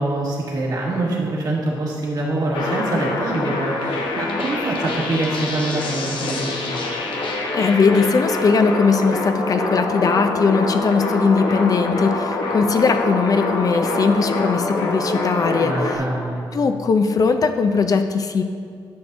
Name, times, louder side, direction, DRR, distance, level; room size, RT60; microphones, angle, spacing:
voice 1, 0.0-6.8 15.6-16.4, right 2 dB, 55° right, -3 dB, 1.7 m, -24 dB
sound 1, 2.5-16.0, left 2 dB, 85° left, 1.0 m, -25 dB
voice 2, 7.5-16.0 16.5-18.4, left 5 dB, 50° left, 7 dB, 0.5 m, -19 dB
10.5 x 6.7 x 2.6 m, 2.2 s
cardioid pair, 110°, 8 cm